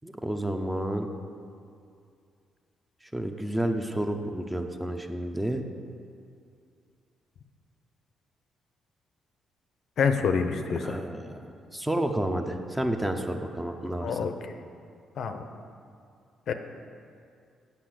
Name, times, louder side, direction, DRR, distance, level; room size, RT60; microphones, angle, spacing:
voice 1, 0.0-1.1 3.1-5.6 10.8-11.4 11.7-14.2, right 1 dB, 10° right, 5 dB, 0.7 m, -30 dB
voice 2, 10.0-11.0 14.0-14.6 15.2-15.4 16.5-16.6, left 6 dB, 65° left, 7 dB, 0.6 m, -27 dB
8.6 x 5.4 x 7.7 m, 2.4 s
cardioid pair, 90°, 0 cm